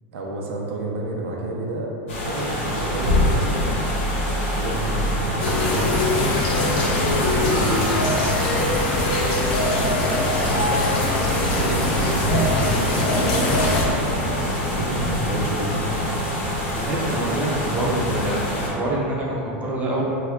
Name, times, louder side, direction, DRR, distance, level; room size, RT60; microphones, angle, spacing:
voice 1, 0.1-1.9 2.2-3.5 4.5-6.1 6.7-8.0 10.5-11.0 11.5-13.6 14.0-16.0, right 2 dB, 85° right, -1 dB, 0.4 m, -30 dB
sound 1, 2.1-18.7, left 1 dB, 85° left, 0.9 m, -25 dB
sound 2, 5.4-13.8, left 2 dB, 60° left, 0.6 m, -22 dB
voice 2, 16.7-18.4 18.7-20.0, right 1 dB, 20° right, -4 dB, 0.5 m, -26 dB
2.3 x 2.1 x 3.5 m, 2.7 s
supercardioid pair, 130°, 6 cm